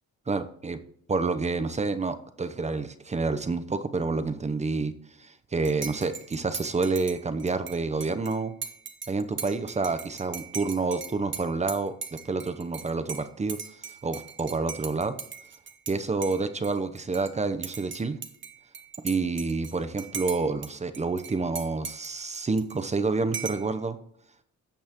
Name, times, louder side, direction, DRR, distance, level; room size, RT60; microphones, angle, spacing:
voice 1, 0.3-0.8 1.1-4.9 5.2-8.5 9.1-13.6 14.0-15.2 15.9-18.2 19.0-24.0, right 3 dB, 20° right, 10 dB, 0.8 m, -28 dB
Dishes pots and pans / Cutlery silverware / Chink clink, 5.6-15.9 16.2-17.3 17.6-20.7 20.9-22.9 23.3-23.7, right 6 dB, 40° right, 1.1 m, -39 dB
15.5 x 5.4 x 3.0 m, 0.67 s
cardioid pair, 90°, 30 cm